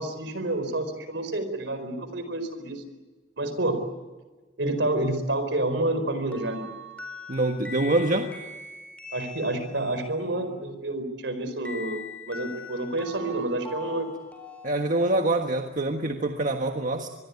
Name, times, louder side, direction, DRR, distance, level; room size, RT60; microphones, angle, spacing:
voice 1, 0.0-2.8 3.4-3.8 4.6-6.7 9.1-12.0 12.3-14.1, right 2 dB, 70° right, 9 dB, 4.7 m, -29 dB
sound 1, 6.3-10.1 11.6-15.4, left 3 dB, 5° left, 4.3 m, -42 dB
voice 2, 7.3-8.3 14.6-17.1, right 2 dB, 45° right, 4 dB, 1.5 m, -25 dB
25.0 x 22.0 x 8.5 m, 1.3 s
head